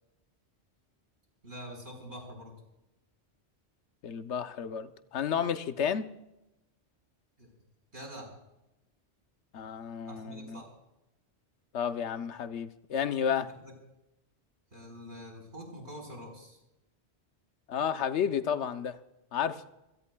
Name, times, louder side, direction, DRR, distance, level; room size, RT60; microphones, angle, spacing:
voice 1, 1.4-2.5 7.4-7.5 7.9-8.3 10.1-10.7 13.6-13.7 14.7-16.6, equal, 80° right, 1 dB, 4.9 m, -45 dB
voice 2, 4.0-6.1 9.5-10.6 11.7-13.5 17.7-19.0 19.3-19.6, left 8 dB, 80° left, 10 dB, 1.0 m, -31 dB
27.0 x 17.0 x 2.3 m, 0.94 s
omnidirectional pair, 1.2 m